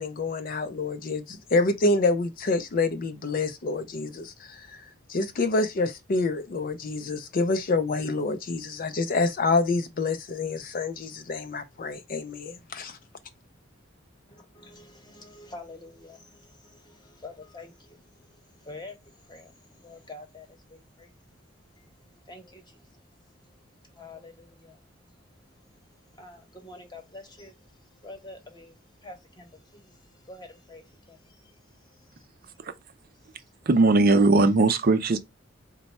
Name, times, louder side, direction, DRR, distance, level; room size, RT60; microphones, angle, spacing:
voice 1, 0.0-4.8 5.1-13.0, left 3 dB, 45° left, 0.4 m, -27 dB
voice 2, 14.3-21.3 21.8-32.6 33.1-33.6, left 2 dB, 20° left, 1.0 m, -48 dB
voice 3, 33.7-35.2, right 3 dB, 50° right, 0.5 m, -19 dB
4.1 x 2.2 x 4.1 m
head